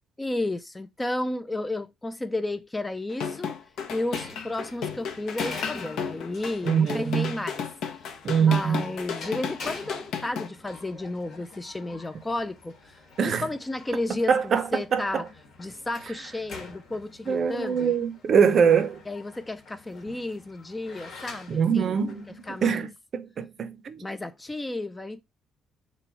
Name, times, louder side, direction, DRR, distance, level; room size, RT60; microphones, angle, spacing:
voice 1, 0.2-3.6 3.9-7.6 8.4-12.8 13.2-15.3 15.6-17.9 19.1-22.0 22.5-22.9 24.0-25.2, left 2 dB, 15° left, 0.4 m, -32 dB
sound 1, 3.1-10.5, left 6 dB, 70° left, 0.8 m, -33 dB
sound 2, 3.9-22.6, left 4 dB, 55° left, 1.2 m, -45 dB
voice 2, 6.6-7.3 8.2-8.8 13.2-13.4 14.3-15.2 17.3-19.0 21.5-24.0, right 7 dB, 45° right, 0.6 m, -23 dB
3.1 x 2.9 x 4.6 m
cardioid pair, 120°, 0 cm